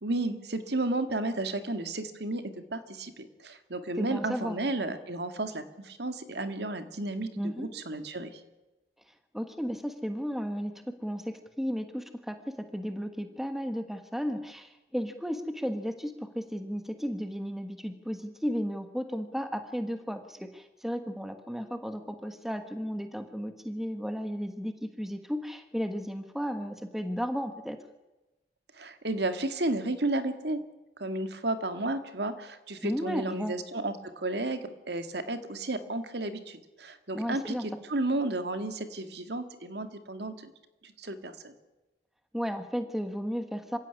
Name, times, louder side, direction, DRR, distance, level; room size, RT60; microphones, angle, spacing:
voice 1, 0.0-2.4 2.7-8.3 28.8-30.6 31.0-40.5 40.8-41.5, right 2 dB, 70° right, 8 dB, 2.1 m, -33 dB
voice 2, 4.0-4.6 7.4-7.7 9.3-10.7 11.0-12.4 12.7-27.8 32.8-33.5 37.1-37.8 42.3-43.8, equal, ahead, 7 dB, 1.4 m, -34 dB
26.5 x 16.0 x 9.8 m, 1.1 s
head